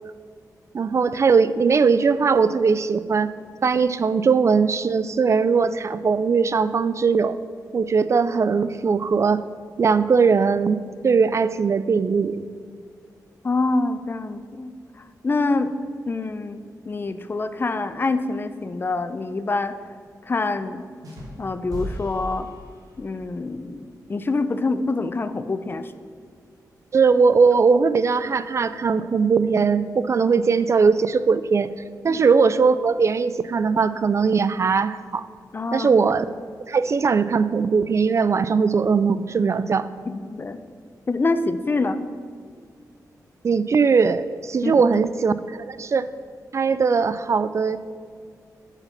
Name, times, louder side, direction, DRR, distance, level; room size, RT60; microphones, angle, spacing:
voice 1, 0.7-3.3 3.6-7.4 7.7-9.5 9.8-12.4 26.9-31.7 32.0-35.3 35.7-36.2 36.7-39.9 43.4-46.1 46.5-47.8, right 5 dB, 45° right, 14 dB, 0.3 m, -20 dB
voice 2, 13.4-14.7 15.2-15.7 16.1-16.6 16.9-19.7 20.2-20.8 21.4-22.5 23.0-25.9 32.1-32.2 35.5-35.9 40.1-40.6 41.1-42.0 44.6-44.8, left 3 dB, 30° left, 11 dB, 0.5 m, -25 dB
sound 1, 21.0-23.2, equal, 65° right, 2.4 m, -36 dB
8.1 x 7.0 x 5.8 m, 2.1 s
wide cardioid pair, 110°, 7 cm